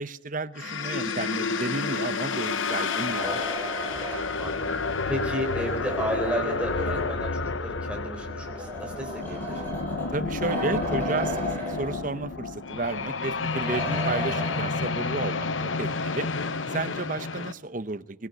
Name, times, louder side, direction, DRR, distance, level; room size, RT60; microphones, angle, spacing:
voice 1, 0.0-3.3 10.1-11.4 11.8-16.3 16.7-18.3, right 3 dB, 45° right, 14 dB, 0.8 m, -32 dB
sound 1, 0.6-17.5, left 4 dB, 85° left, 1.0 m, -30 dB
sound 2, 2.7-7.4 8.3-12.5 12.8-12.9 13.5-15.1, right 1 dB, 10° left, 7.7 m, -36 dB
voice 2, 4.1-9.6 13.0-13.2, right 1 dB, 5° right, 0 dB, 4.1 m, -33 dB
24.5 x 17.0 x 9.4 m, 0.93 s
head